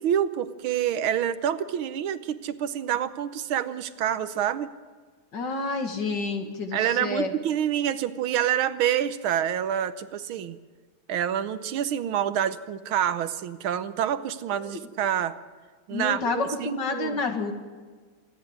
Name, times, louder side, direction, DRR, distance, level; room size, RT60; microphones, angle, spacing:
voice 1, 0.0-4.7 6.7-10.6 11.1-15.4 15.9-17.2, right 10 dB, 75° right, 13 dB, 1.6 m, -27 dB
voice 2, 5.3-7.3 14.6-14.8 15.9-17.5, left 3 dB, 55° left, 5 dB, 2.6 m, -29 dB
26.0 x 10.5 x 9.7 m, 1.5 s
omnidirectional pair, 2.4 m